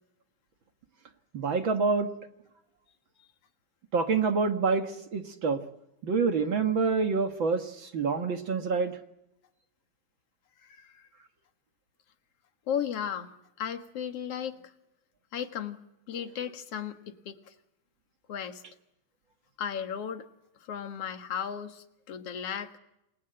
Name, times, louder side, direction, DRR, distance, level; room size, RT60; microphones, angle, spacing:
voice 1, 1.3-2.1 3.9-5.6 6.0-9.0, right 4 dB, 45° right, 8 dB, 1.7 m, -27 dB
voice 2, 10.6-11.0 12.7-14.7 15.3-17.5 18.3-18.6 19.6-20.3 20.6-22.7, left 8 dB, 50° left, 8 dB, 2.3 m, -35 dB
28.5 x 20.0 x 7.9 m, 0.86 s
omnidirectional pair, 3.9 m